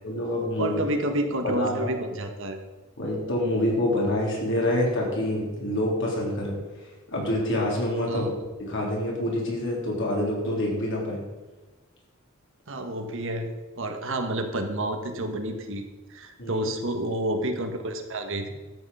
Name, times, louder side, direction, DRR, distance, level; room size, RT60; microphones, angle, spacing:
voice 1, 0.0-0.8 1.4-1.9 3.0-6.6 7.1-8.3 8.6-11.2 16.4-16.7, left 1 dB, 60° left, -2 dB, 3.7 m, -26 dB
voice 2, 0.6-2.6 8.1-8.3 12.7-13.5 13.8-15.8 16.1-18.5, right 1 dB, 60° right, 6 dB, 1.4 m, -29 dB
12.5 x 8.0 x 5.6 m, 1.2 s
head